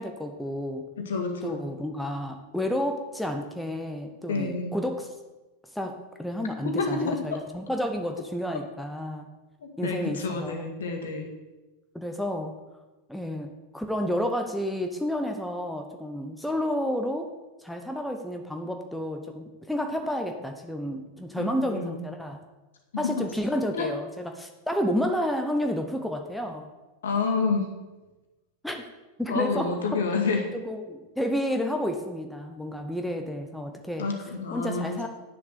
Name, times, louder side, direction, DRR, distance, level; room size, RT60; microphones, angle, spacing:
voice 1, 0.0-0.9 1.4-5.1 5.7-9.3 9.8-10.6 11.9-12.6 13.1-17.3 17.6-22.4 23.0-26.7 28.6-28.8 29.2-30.0 30.5-34.1 34.5-35.1, equal, ahead, 4 dB, 1.0 m, -30 dB
voice 2, 1.0-1.6 4.3-4.8 6.6-7.4 9.6-11.3 21.4-22.0 23.0-23.2 23.7-23.9 27.0-27.8 29.3-30.5 34.0-35.0, left 4 dB, 65° left, 3 dB, 2.0 m, -29 dB
10.0 x 7.1 x 6.9 m, 1.1 s
figure-of-eight pair, 90°, 0 cm